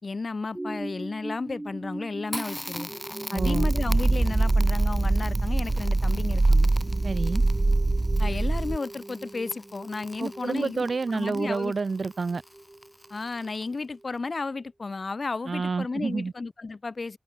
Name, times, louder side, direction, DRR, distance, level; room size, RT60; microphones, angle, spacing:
voice 1, 0.0-2.9 3.3-6.7 8.2-11.7 13.1-17.2, left 3 dB, 70° left, 5.3 m, -33 dB
sound 1, 0.5-14.1 14.6-14.7, right 1 dB, 25° right, 4.2 m, -42 dB
Crackle, 2.3-13.8, equal, 10° left, 7.2 m, -43 dB
voice 2, 3.3-3.7 7.0-7.4 10.2-12.4 15.5-16.3, right 4 dB, 80° right, 0.7 m, -29 dB
sound 2, 3.4-8.8, right 2 dB, 40° right, 0.4 m, -23 dB
wide cardioid pair, 60°, 0 cm